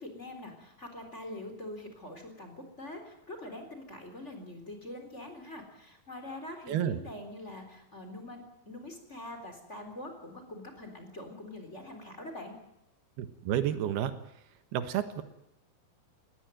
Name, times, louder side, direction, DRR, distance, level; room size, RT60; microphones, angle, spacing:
voice 1, 0.0-12.6, left 1 dB, 20° left, 5 dB, 3.8 m, -44 dB
voice 2, 6.7-7.0 13.2-14.1 14.7-15.2, right 10 dB, 90° right, 11 dB, 3.4 m, -30 dB
20.0 x 17.5 x 9.2 m, 0.84 s
omnidirectional pair, 4.4 m